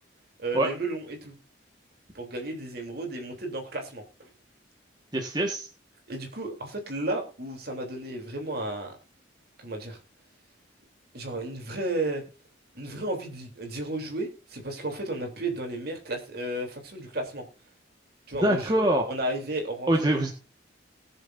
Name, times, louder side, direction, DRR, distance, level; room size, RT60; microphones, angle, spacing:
voice 1, 0.4-1.4 2.1-4.3 6.1-8.9 9.6-10.0 11.1-12.2 12.7-17.4 18.3-18.7 19.1-19.9, right 2 dB, 55° right, 3 dB, 3.3 m, -33 dB
voice 2, 5.1-5.7 18.4-19.0 19.9-20.3, right 1 dB, 20° right, 1 dB, 1.5 m, -24 dB
20.0 x 7.1 x 2.6 m, 0.34 s
head